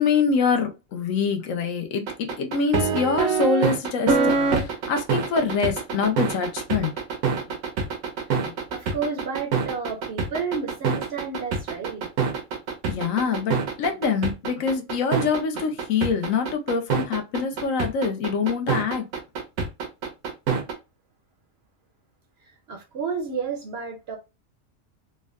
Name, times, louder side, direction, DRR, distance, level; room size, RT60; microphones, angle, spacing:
voice 1, 0.0-6.9 12.9-19.0, left 5 dB, 75° left, 1.0 m, -25 dB
sound 1, 2.1-20.7, right 5 dB, 85° right, 1.1 m, -25 dB
voice 2, 8.3-12.1 22.4-24.2, right 5 dB, 60° right, 0.7 m, -31 dB
3.5 x 2.1 x 2.2 m
omnidirectional pair, 1.4 m